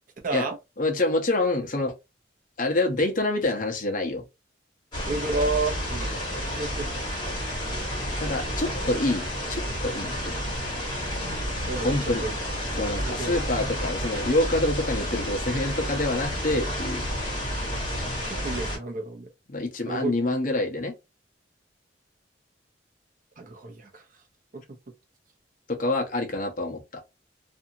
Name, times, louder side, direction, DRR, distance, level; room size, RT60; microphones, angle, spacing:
voice 1, 0.2-0.6 5.1-6.2 6.6-7.1 7.7-7.9 11.7-12.4 13.0-13.4 18.3-19.3 19.9-20.1 23.4-24.0 24.5-24.6, right 3 dB, 45° right, 0.7 m, -31 dB
voice 2, 0.8-1.9 2.6-4.2 8.2-10.4 11.8-12.3 12.8-17.0 19.5-20.9 25.7-27.0, left 2 dB, 50° left, 0.8 m, -26 dB
sound 1, 4.9-18.8, equal, 25° left, 1.4 m, -30 dB
2.7 x 2.4 x 2.7 m
head